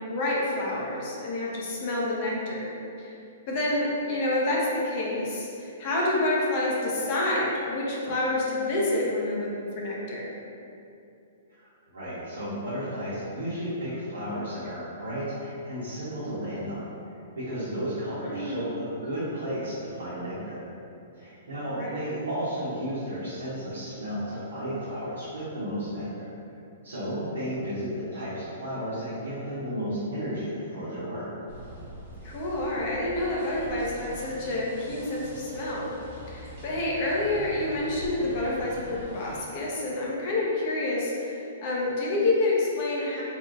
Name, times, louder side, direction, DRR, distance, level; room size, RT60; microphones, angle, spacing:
voice 1, 0.1-2.7 3.0-3.2 3.5-10.3 18.3-18.7 21.7-22.0 32.2-35.9 36.3-43.2, left 2 dB, 50° left, -4 dB, 0.7 m, -28 dB
voice 2, 11.6-16.8 17.4-20.6 21.2-26.3 26.8-31.3, equal, 85° right, -12 dB, 0.9 m, -33 dB
sound 1, 31.5-39.4, right 1 dB, 50° right, 0.7 m, -43 dB
3.5 x 2.4 x 2.5 m, 2.6 s
hypercardioid pair, 125°, 0 cm